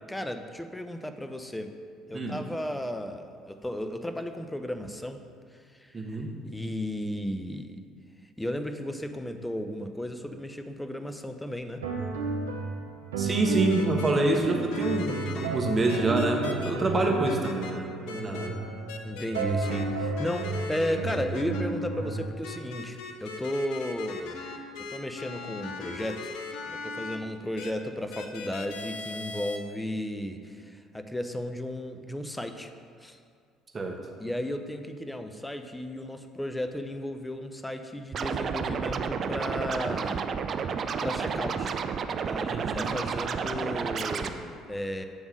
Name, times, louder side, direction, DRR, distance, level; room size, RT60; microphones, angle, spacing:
voice 1, 0.1-1.8 2.1-5.2 5.5-7.8 8.4-11.8 18.3-18.4 19.0-24.4 24.9-26.3 26.7-32.7 33.0-33.2 34.2-40.3 41.0-41.7 42.2-45.0, left 1 dB, 10° left, 7 dB, 0.6 m, -34 dB
voice 2, 5.9-6.4 13.2-18.5 33.7-34.0 42.5-42.9, right 2 dB, 30° right, 1 dB, 1.2 m, -27 dB
sound 1, 11.8-22.2, right 3 dB, 85° right, 0.7 m, -32 dB
sound 2, 13.7-14.1 14.7-15.5 15.9-16.7 17.2-17.7 18.1-18.5 18.9-19.8 20.1-21.6 22.4-27.2 27.6-27.7 28.1-29.6, left 4 dB, 70° left, 0.6 m, -39 dB
Scratching (performance technique), 38.1-44.3, right 6 dB, 45° right, 0.4 m, -31 dB
7.9 x 3.5 x 6.2 m, 2.2 s
hypercardioid pair, 60°, 0 cm